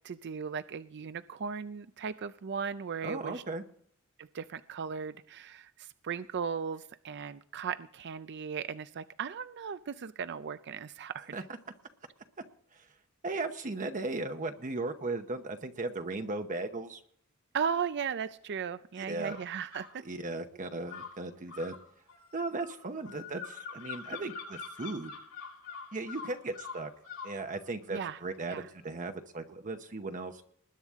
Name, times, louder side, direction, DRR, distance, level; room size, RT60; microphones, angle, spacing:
voice 1, 0.0-3.4 4.2-11.3 17.5-20.0 27.9-28.2 28.5-28.7, right 6 dB, 50° right, 13 dB, 0.5 m, -37 dB
voice 2, 3.0-3.6 11.3-11.4 12.7-13.0 13.2-17.0 19.0-19.4 20.0-21.8 22.3-25.1 25.9-26.9 27.2-30.4, right 3 dB, 35° right, 6 dB, 0.9 m, -37 dB
sound 1, 19.2-19.9 20.9-27.4, left 5 dB, 80° left, 5.1 m, -44 dB
20.5 x 9.8 x 3.6 m, 0.65 s
head